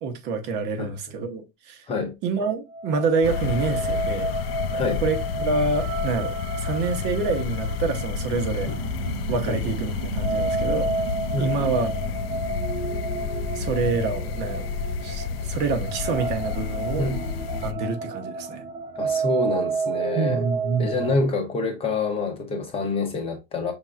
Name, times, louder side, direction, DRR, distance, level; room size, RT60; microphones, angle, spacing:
voice 1, 0.0-1.8 2.2-4.3 5.0-8.7 9.3-10.9 11.4-11.9 13.5-14.7 15.0-17.1 17.6-18.6 20.2-21.1, right 4 dB, 35° right, 0.8 m, -27 dB
sound 1, 2.7-21.1, right 3 dB, 15° right, 0.4 m, -31 dB
sound 2, 3.2-17.7, left 6 dB, 85° left, 0.6 m, -30 dB
voice 2, 4.7-5.0 8.7-8.8 9.5-9.6 11.3-11.7 17.0-17.4 19.0-20.4 20.8-23.7, left 3 dB, 20° left, 0.8 m, -27 dB
sound 3, 7.6-18.7 19.1-19.2, right 10 dB, 85° right, 0.7 m, -40 dB
5.7 x 3.6 x 2.4 m
supercardioid pair, 160°, 29 cm